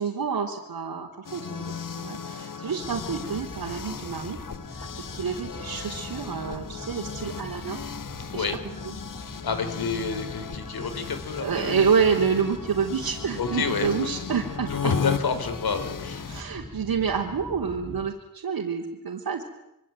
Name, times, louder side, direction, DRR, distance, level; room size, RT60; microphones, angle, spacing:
voice 1, 0.0-4.4 4.7-7.8 8.3-8.5 11.4-14.9 16.3-19.4, right 6 dB, 80° right, -1 dB, 3.5 m, -28 dB
sound 1, 1.2-16.4, left 6 dB, 60° left, 1.5 m, -36 dB
sound 2, 2.8-18.1, left 1 dB, 15° left, 5.3 m, -42 dB
voice 2, 9.4-11.8 13.4-13.9 14.7-16.3, left 5 dB, 85° left, 10 dB, 4.3 m, -29 dB
26.5 x 24.5 x 9.1 m, 0.85 s
wide cardioid pair, 115°, 35 cm